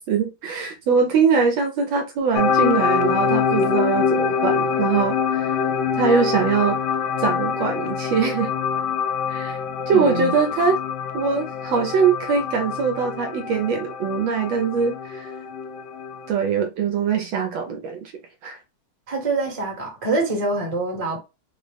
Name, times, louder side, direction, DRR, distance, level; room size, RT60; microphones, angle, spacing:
voice 1, 0.0-5.5 6.0-6.8 7.2-8.5 9.3-9.6 9.9-10.8 11.1-15.4 16.3-18.1 18.4-18.6, right 6 dB, 75° right, 1.2 m, -22 dB
sound 1, 2.4-16.3, left 6 dB, 75° left, 1.1 m, -25 dB
voice 2, 9.9-10.4 19.1-21.2, right 2 dB, 25° right, 0.9 m, -25 dB
4.0 x 2.0 x 3.2 m
omnidirectional pair, 2.3 m